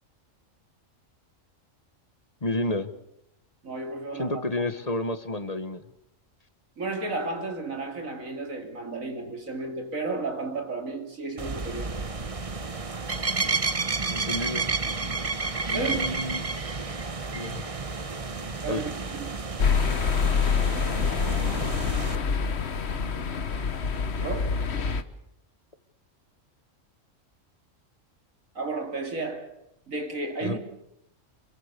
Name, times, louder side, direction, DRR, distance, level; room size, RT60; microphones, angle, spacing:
voice 1, 2.4-2.9 4.1-5.8 14.1-14.7 15.7-16.4 17.3-17.6 18.7-18.8 30.4-30.6, left 2 dB, 30° left, 1.6 m, -30 dB
voice 2, 3.6-4.4 6.8-11.9 15.7-16.2 18.6-19.5 24.2-24.7 28.5-29.6 29.9-30.6, right 3 dB, 85° right, 3.3 m, -33 dB
sound 1, 11.4-22.2, right 3 dB, 30° right, 1.1 m, -31 dB
sound 2, 19.6-25.0, left 6 dB, 55° left, 1.4 m, -26 dB
27.5 x 23.0 x 6.9 m
omnidirectional pair, 1.4 m